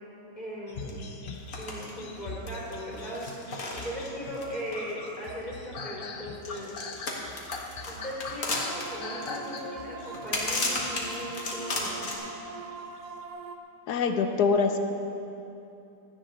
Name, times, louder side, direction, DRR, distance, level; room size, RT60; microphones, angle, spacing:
voice 1, 0.4-1.0 1.6-3.2 3.7-6.7 7.9-12.2, equal, 20° left, -6 dB, 3.5 m, -38 dB
sound 1, 0.7-12.0 12.7-13.1, left 3 dB, 80° left, 0.4 m, -42 dB
sound 2, 0.9-1.0 1.3-1.9 2.2-5.4 6.4-12.1, left 2 dB, 45° left, 2.0 m, -34 dB
sound 3, 8.5-13.6, right 4 dB, 65° right, 1.1 m, -42 dB
voice 2, 13.9-14.8, left 5 dB, 60° left, 6 dB, 1.2 m, -24 dB
16.5 x 13.0 x 4.0 m, 2.8 s
omnidirectional pair, 2.2 m